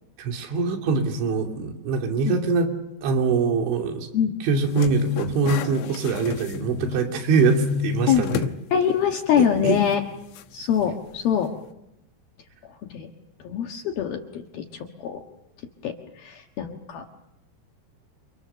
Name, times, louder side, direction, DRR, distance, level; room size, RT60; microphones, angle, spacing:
voice 1, 0.2-2.7 3.0-4.1 4.4-8.5 9.4-9.8, right 4 dB, 85° right, 2 dB, 5.2 m, -23 dB
sound 1, 4.6-7.1 7.4-8.6 9.0-9.1 10.4-10.5, left 7 dB, 85° left, 3.6 m, -30 dB
voice 2, 8.7-10.0 10.5-11.5 12.9-13.1 13.4-15.2 15.8-17.1, left 8 dB, 65° left, 3 dB, 3.1 m, -24 dB
29.0 x 29.0 x 6.9 m, 0.85 s
omnidirectional pair, 5.2 m